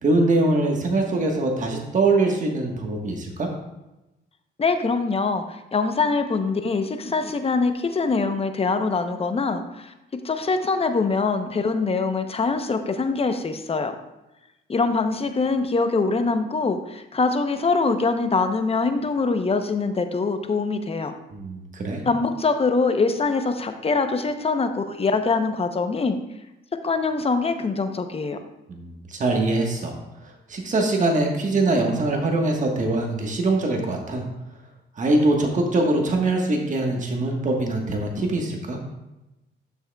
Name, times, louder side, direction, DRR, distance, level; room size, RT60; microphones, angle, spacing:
voice 1, 0.0-3.5 21.3-22.0 28.7-29.9 30.5-34.2 35.0-38.8, right 2 dB, 40° right, 1 dB, 1.3 m, -23 dB
voice 2, 4.6-9.9 10.2-13.9 14.7-21.2 22.1-26.2 26.8-28.4, left 4 dB, 30° left, 8 dB, 0.7 m, -23 dB
11.0 x 6.3 x 2.3 m, 0.97 s
cardioid pair, 90°, 20 cm